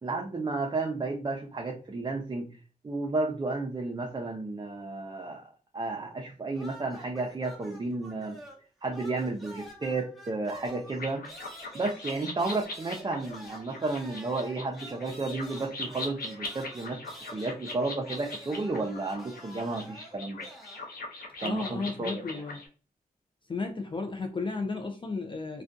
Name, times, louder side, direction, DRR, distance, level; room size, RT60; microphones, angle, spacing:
voice 1, 0.0-2.5 2.8-8.4 8.8-11.2 11.7-17.0 17.3-20.4 21.4-22.4, right 3 dB, 30° right, 1 dB, 0.5 m, -32 dB
sound 1, 6.5-8.7 8.9-20.9, right 1 dB, ahead, 0.8 m, -48 dB
sound 2, 10.9-22.7, left 3 dB, 75° left, 0.7 m, -41 dB
voice 2, 21.4-22.6 23.5-25.6, left 3 dB, 35° left, 4 dB, 0.4 m, -33 dB
2.4 x 2.2 x 2.4 m, 0.37 s
cardioid pair, 50°, 15 cm